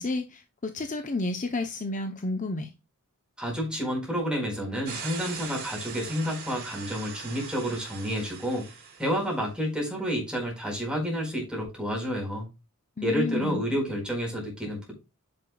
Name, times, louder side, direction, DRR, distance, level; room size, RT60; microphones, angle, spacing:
voice 1, 0.0-2.7 13.0-13.6, left 2 dB, 35° left, 0.7 m, -31 dB
voice 2, 3.4-8.6 9.0-12.5 13.0-14.9, equal, 5° right, 4.6 m, -30 dB
sound 1, 4.9-9.3, right 5 dB, 45° right, 3.5 m, -40 dB
9.3 x 6.6 x 2.3 m
head